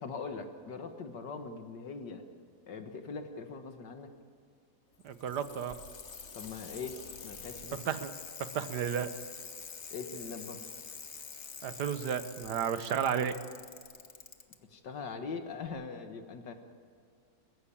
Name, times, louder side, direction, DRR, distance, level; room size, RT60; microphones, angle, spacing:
voice 1, 0.0-2.2 2.7-4.1 6.4-7.0 7.2-7.8 9.9-10.6 14.7-16.5, left 5 dB, 70° left, 6 dB, 2.0 m, -41 dB
Bicycle, 4.9-14.6 15.7-15.8, left 5 dB, 40° left, 1.4 m, -46 dB
voice 2, 5.0-5.8 7.9-8.1 8.4-9.1 11.6-13.3, right 8 dB, 65° right, 11 dB, 1.6 m, -32 dB
21.5 x 16.0 x 8.7 m, 2.1 s
omnidirectional pair, 1.9 m